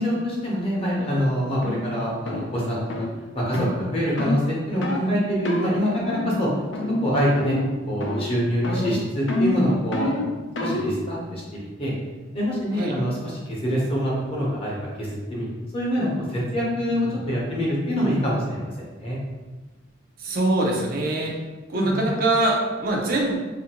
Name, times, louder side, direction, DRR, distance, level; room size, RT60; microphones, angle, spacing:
voice 1, 0.0-3.0 3.3-4.4 4.7-6.5 7.0-7.6 7.9-10.1 10.6-11.4 11.8-11.9 12.3-13.2 13.5-15.5 15.7-18.7 19.0-19.2 21.7-22.0, equal, 30° left, -4 dB, 0.7 m, -25 dB
sound 1, 1.0-1.2 1.6-1.8 2.3-2.5 2.9-3.1 3.5-3.8 4.2-4.4 4.8-5.1 5.4-5.7 6.1-6.4 6.7-7.1 7.4-7.7 8.0-8.4 8.6-11.0, left 1 dB, 65° left, 0.4 m, -27 dB
voice 2, 16.9-17.2 20.2-23.4, right 2 dB, 50° right, -1 dB, 0.4 m, -24 dB
2.6 x 2.5 x 2.9 m, 1.2 s
head